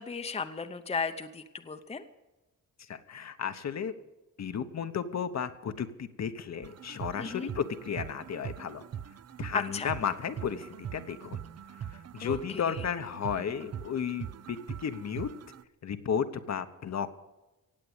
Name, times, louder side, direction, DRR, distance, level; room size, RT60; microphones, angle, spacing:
voice 1, 0.0-2.0 7.2-7.5 9.7-9.9 12.2-12.8, left 5 dB, 20° left, 8 dB, 0.8 m, -36 dB
voice 2, 2.9-3.9 4.4-8.8 9.4-11.4 11.8-15.3 15.8-17.2, left 7 dB, 55° left, 9 dB, 1.1 m, -34 dB
sound 1, 6.6-15.6, right 9 dB, 50° right, 0.6 m, -42 dB
17.5 x 8.3 x 8.1 m, 1.1 s
wide cardioid pair, 135°, 32 cm